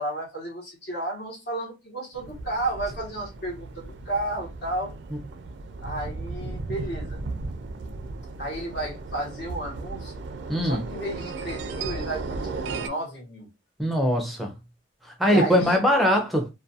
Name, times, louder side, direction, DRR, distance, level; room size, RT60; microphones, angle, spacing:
voice 1, 0.0-4.9 5.8-7.2 8.4-10.1 10.6-12.4 12.7-13.5 15.2-15.8, right 1 dB, 55° left, 1.0 m, -32 dB
sound 1, 2.1-12.9, right 3 dB, 60° right, 0.3 m, -35 dB
voice 2, 10.5-10.8 13.8-14.5 15.2-16.5, equal, ahead, 0.5 m, -21 dB
2.4 x 2.2 x 2.6 m
head